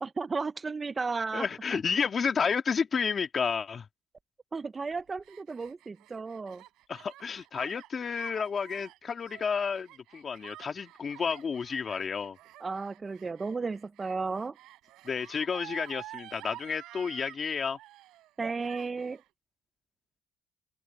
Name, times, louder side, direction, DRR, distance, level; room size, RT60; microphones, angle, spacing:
voice 1, 0.0-1.8 4.5-6.6 12.6-14.6 18.4-19.2, right 4 dB, 20° right, 0.4 m, -34 dB
voice 2, 1.3-3.9 6.9-12.4 15.0-17.8, left 6 dB, 30° left, 2.3 m, -31 dB
Gasp, 4.9-17.4 17.7-18.3 18.6-19.3, right 16 dB, 75° right, 3.8 m, -50 dB
cardioid pair, 135°, 0 cm